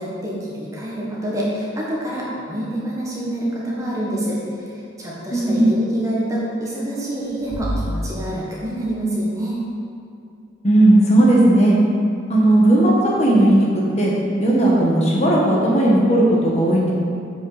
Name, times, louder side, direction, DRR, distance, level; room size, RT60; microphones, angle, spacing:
voice 1, 0.0-9.6, right 1 dB, 15° right, -6 dB, 1.6 m, -27 dB
sound 1, 3.8-7.7, right 1 dB, 50° left, 1.8 m, -41 dB
voice 2, 5.3-5.7 10.6-11.7 12.3-13.7 14.0-14.1 14.4-16.9, right 1 dB, 35° left, -4 dB, 1.3 m, -15 dB
7.9 x 5.4 x 5.8 m, 2.6 s
head